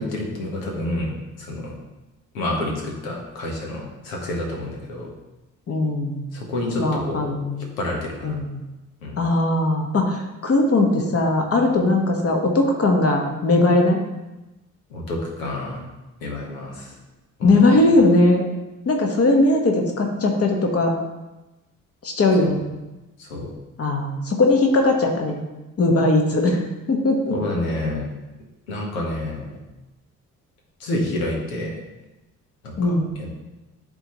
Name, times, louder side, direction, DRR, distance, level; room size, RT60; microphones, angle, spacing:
voice 1, 0.0-1.7 2.3-5.1 6.3-7.4 7.8-8.4 9.0-9.2 14.9-15.9 16.2-16.9 17.4-17.6 22.4-22.5 23.2-23.5 27.3-28.0 28.7-29.6 30.8-31.8 32.6-33.3, left 1 dB, 70° left, -1 dB, 1.4 m, -29 dB
voice 2, 5.7-6.3 6.8-7.7 8.2-8.6 9.2-14.0 17.4-18.4 18.8-20.9 22.0-22.6 23.8-25.4 25.8-26.6 26.9-27.3 32.8-33.1, left 2 dB, 35° left, 2 dB, 1.4 m, -19 dB
11.0 x 4.0 x 3.0 m, 1.0 s
figure-of-eight pair, 45°, 42 cm